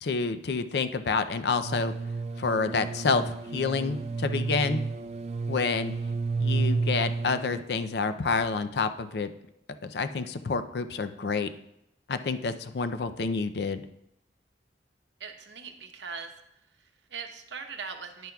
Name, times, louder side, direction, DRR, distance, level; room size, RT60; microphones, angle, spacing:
voice 1, 0.0-1.9 2.4-4.8 5.5-5.9 6.4-9.3 9.8-11.5 12.1-13.8, left 4 dB, 65° left, 10 dB, 0.5 m, -28 dB
sound 1, 1.6-7.6, right 4 dB, 40° right, 0.4 m, -31 dB
voice 2, 15.2-16.4 16.7-18.3, right 5 dB, 85° right, 5 dB, 0.9 m, -41 dB
10.0 x 9.3 x 2.3 m, 0.80 s
head